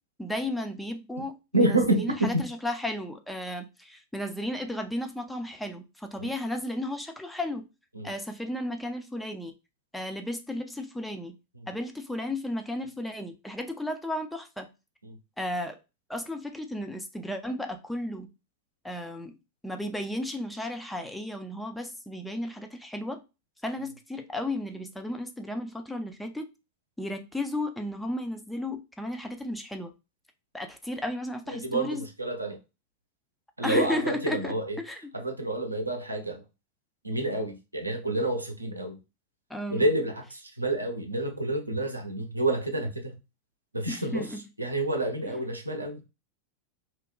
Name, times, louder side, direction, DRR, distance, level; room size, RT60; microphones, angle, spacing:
voice 1, 0.2-7.6 8.0-9.5 9.9-11.4 11.7-14.7 15.4-15.8 16.1-18.3 18.8-19.4 19.6-23.2 23.6-26.5 27.0-29.9 30.5-32.1 33.6-35.1 39.5-39.9 43.9-44.4 45.3-45.4, left 1 dB, 5° left, 0.4 m, -34 dB
voice 2, 1.5-2.4 6.2-6.3 7.9-8.1 11.6-11.7 31.5-32.6 33.6-34.8 35.1-36.4 37.0-39.0 39.7-43.2 43.7-44.3 44.6-46.0, right 2 dB, 85° right, 0.6 m, -28 dB
2.5 x 2.2 x 3.5 m
figure-of-eight pair, 90°, 0 cm